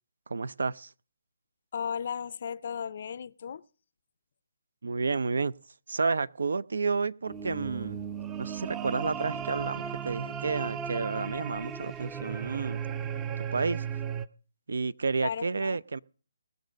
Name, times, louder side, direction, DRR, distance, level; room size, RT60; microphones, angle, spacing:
voice 1, 0.3-0.9 4.8-5.5 5.9-8.0 8.4-12.8 13.4-13.9 14.7-16.0, right 4 dB, 70° right, 0.5 m, -31 dB
voice 2, 1.7-3.6 15.2-15.8, left 7 dB, 50° left, 0.5 m, -35 dB
sound 1, 7.3-14.3, right 8 dB, 15° right, 0.6 m, -36 dB
19.5 x 6.6 x 5.2 m
figure-of-eight pair, 150°, 0 cm